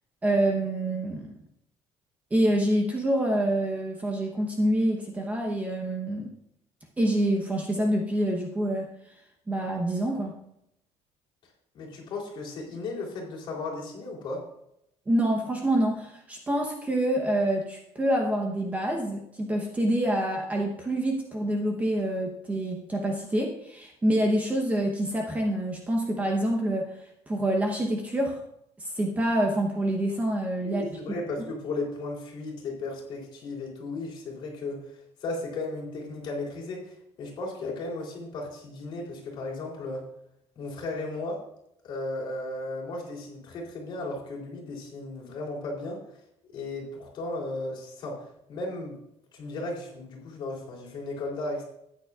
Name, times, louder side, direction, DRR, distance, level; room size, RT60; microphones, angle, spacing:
voice 1, 0.2-1.3 2.3-6.3 7.0-8.9 9.5-10.4 15.1-26.9 27.3-28.4 28.8-30.9, right 1 dB, 15° right, 1 dB, 0.9 m, -26 dB
voice 2, 11.7-14.4 30.6-40.0 40.5-41.4 41.8-46.0 46.5-48.2 48.5-49.0 49.3-51.7, left 2 dB, 45° left, -2 dB, 3.4 m, -35 dB
13.5 x 9.2 x 2.4 m, 0.78 s
cardioid pair, 175°, 11 cm